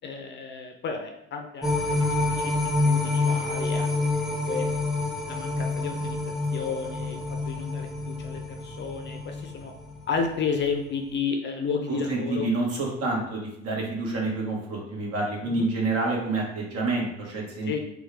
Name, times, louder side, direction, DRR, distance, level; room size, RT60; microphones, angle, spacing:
voice 1, 0.0-4.7 5.3-6.2 6.5-9.7 10.1-12.5 15.4-15.7 17.7-17.8, left 5 dB, 35° left, 4 dB, 0.6 m, -32 dB
sound 1, 1.6-10.0 10.4-10.5, left 2 dB, ahead, 0.8 m, -27 dB
voice 2, 11.9-17.8, right 2 dB, 45° right, -1 dB, 1.4 m, -28 dB
4.3 x 2.3 x 3.3 m, 0.78 s
hypercardioid pair, 75°, 32 cm